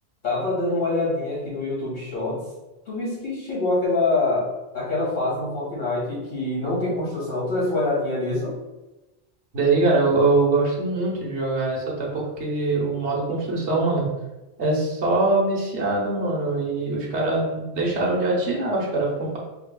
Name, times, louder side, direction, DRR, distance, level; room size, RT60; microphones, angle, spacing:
voice 1, 0.2-2.4 2.9-4.5 4.7-8.5, left 2 dB, 55° left, -7 dB, 1.8 m, -25 dB
voice 2, 9.5-14.1 14.6-19.4, right 2 dB, 75° right, -3 dB, 1.2 m, -23 dB
4.8 x 3.2 x 2.2 m, 1.0 s
omnidirectional pair, 1.1 m